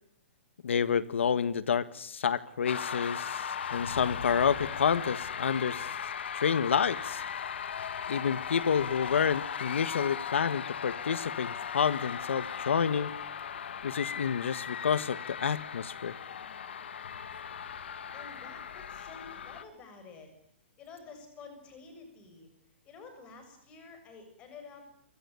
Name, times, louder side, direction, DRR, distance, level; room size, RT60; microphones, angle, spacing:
voice 1, 0.6-5.9 6.3-7.2 8.1-13.1 13.8-16.1, left 7 dB, 80° left, 14 dB, 1.6 m, -29 dB
sound 1, 2.7-19.6, left 7 dB, 65° left, 2.2 m, -38 dB
voice 2, 18.1-20.3 20.8-22.5 22.9-24.8, left 4 dB, 15° left, 7 dB, 7.0 m, -50 dB
29.0 x 25.0 x 7.0 m, 0.65 s
hypercardioid pair, 175°, 6 cm